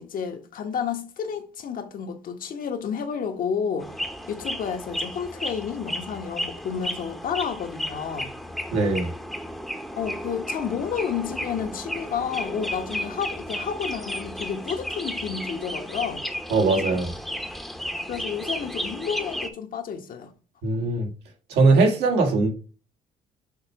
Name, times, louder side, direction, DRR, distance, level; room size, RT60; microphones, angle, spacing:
voice 1, 0.0-3.9 4.3-8.3 9.9-16.3 18.1-20.3, left 7 dB, 55° left, 1.1 m, -31 dB
sound 1, 3.8-19.5, equal, ahead, 0.8 m, -33 dB
voice 2, 8.7-9.1 16.5-17.1 20.6-21.1 21.5-22.5, right 3 dB, 85° right, 2.0 m, -20 dB
6.4 x 3.3 x 4.6 m
cardioid pair, 110°, 17 cm